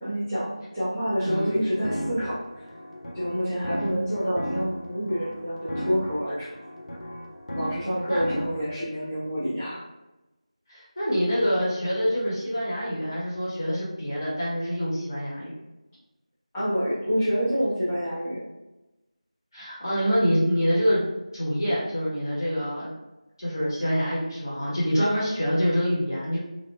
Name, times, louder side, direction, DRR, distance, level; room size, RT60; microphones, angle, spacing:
voice 1, 0.0-2.4 3.1-6.5 7.5-9.8 16.5-18.4, equal, 5° left, -16 dB, 0.4 m, -27 dB
sound 1, 1.0-8.7, equal, 70° left, 0.8 m, -36 dB
voice 2, 1.2-1.6 8.1-8.2 10.7-15.5 19.5-21.1 21.3-22.9 23.4-26.4, equal, 35° left, -8 dB, 1.4 m, -26 dB
3.3 x 2.5 x 2.7 m, 1.0 s
figure-of-eight pair, 175°, 4 cm